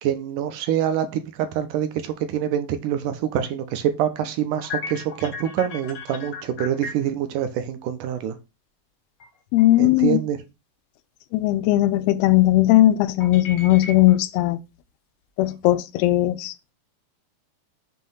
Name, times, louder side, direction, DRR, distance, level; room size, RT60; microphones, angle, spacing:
voice 1, 0.0-8.4 9.8-10.4, right 10 dB, 75° right, 2.0 m, -25 dB
sound 1, 4.4-7.3 9.2-9.3 9.6-10.0 13.2-14.4 14.7-14.8 15.4-15.9, left 5 dB, 65° left, 1.1 m, -36 dB
voice 2, 9.5-10.2 11.3-14.6 15.4-16.5, left 15 dB, 85° left, 2.5 m, -18 dB
7.6 x 3.1 x 5.5 m
omnidirectional pair, 4.4 m